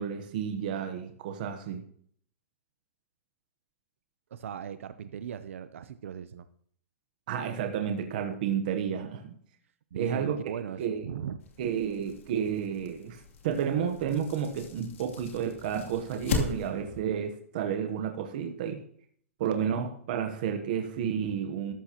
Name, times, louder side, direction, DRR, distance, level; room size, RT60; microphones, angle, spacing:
voice 1, 0.0-1.8 7.3-9.3 9.9-10.4 10.8-11.1 11.6-18.8 19.4-21.7, right 8 dB, 35° right, 5 dB, 0.9 m, -31 dB
voice 2, 4.3-6.5 9.9-11.4 21.2-21.4, right 8 dB, 65° right, 11 dB, 0.6 m, -38 dB
sound 1, 11.4-17.0, left 5 dB, 70° left, 2.7 m, -38 dB
13.0 x 12.0 x 2.9 m, 0.62 s
hypercardioid pair, 180°, 7 cm